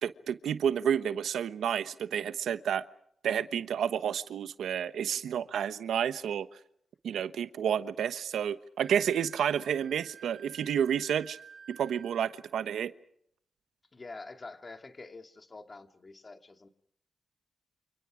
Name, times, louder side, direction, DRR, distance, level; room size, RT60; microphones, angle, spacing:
voice 1, 0.0-2.8 3.2-6.5 7.0-11.4 11.7-12.9, right 8 dB, 90° right, 13 dB, 1.1 m, -30 dB
Wind instrument woodwind instrument, 8.8-12.5, right 8 dB, 70° right, 2.9 m, -52 dB
voice 2, 13.9-16.7, left 3 dB, 30° left, 7 dB, 2.4 m, -46 dB
29.0 x 28.0 x 5.1 m, 0.69 s
cardioid pair, 100°, 0 cm